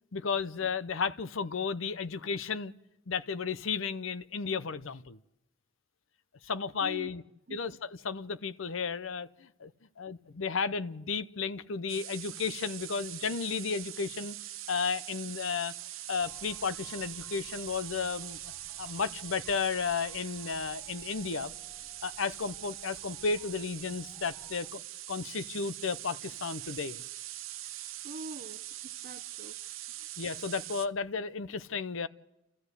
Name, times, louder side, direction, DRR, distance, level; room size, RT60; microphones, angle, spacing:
voice 1, 0.1-2.7 3.1-5.2 6.4-7.2 7.5-9.7 10.0-14.4 14.7-15.7 16.1-18.4 18.8-21.5 22.0-24.8 25.1-27.0 30.2-32.1, left 5 dB, 70° left, 0.7 m, -33 dB
voice 2, 6.8-7.1 7.5-7.6 28.0-29.6 30.0-30.1, right 2 dB, 45° right, 0.7 m, -45 dB
sound 1, 11.9-30.9, right 14 dB, 75° right, 0.8 m, -43 dB
sound 2, 16.2-24.7, left 1 dB, 5° left, 1.3 m, -58 dB
29.5 x 14.0 x 8.2 m
head